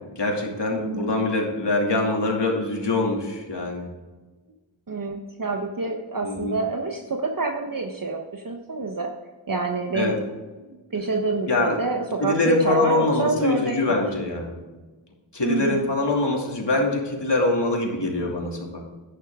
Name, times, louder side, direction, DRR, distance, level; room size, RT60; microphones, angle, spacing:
voice 1, 0.2-3.9 6.2-6.6 9.9-10.2 11.5-11.8 12.2-14.5 15.3-18.9, left 2 dB, 60° left, 0 dB, 2.7 m, -24 dB
voice 2, 0.7-1.1 4.9-9.1 9.5-10.2 10.7-14.1 15.4-15.9, right 3 dB, 45° right, 3 dB, 1.0 m, -27 dB
10.5 x 9.7 x 3.7 m, 1.3 s
wide cardioid pair, 50°, 48 cm